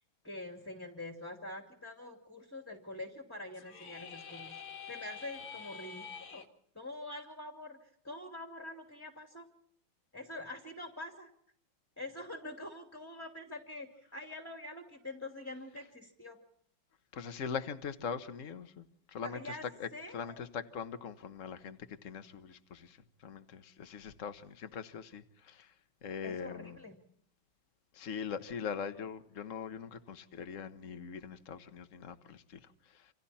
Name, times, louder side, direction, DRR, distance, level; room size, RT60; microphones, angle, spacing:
voice 1, 0.2-4.6 4.9-6.4 6.7-9.5 10.1-11.3 12.0-16.4 19.2-19.6 19.9-20.4 26.2-27.0, left 2 dB, 5° left, 4 dB, 2.4 m, -45 dB
sound 1, 3.5-6.5, left 6 dB, 70° left, 2.8 m, -47 dB
voice 2, 17.1-25.7 26.0-26.8 27.9-33.1, left 6 dB, 40° left, 9 dB, 1.5 m, -42 dB
28.5 x 27.0 x 4.3 m, 0.67 s
omnidirectional pair, 2.3 m